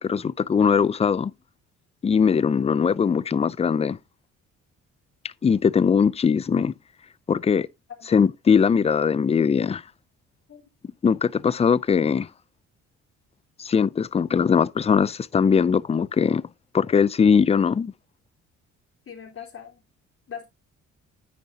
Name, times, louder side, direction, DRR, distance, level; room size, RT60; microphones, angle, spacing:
voice 1, 0.0-1.3 2.0-4.0 5.4-6.7 7.3-7.7 8.1-9.8 11.0-12.3 13.6-16.4 16.7-17.9, left 6 dB, 20° left, 0.4 m, -20 dB
voice 2, 19.1-19.8 20.3-20.5, left 8 dB, 45° left, 3.7 m, -41 dB
9.5 x 9.3 x 2.8 m
cardioid pair, 90°, 30 cm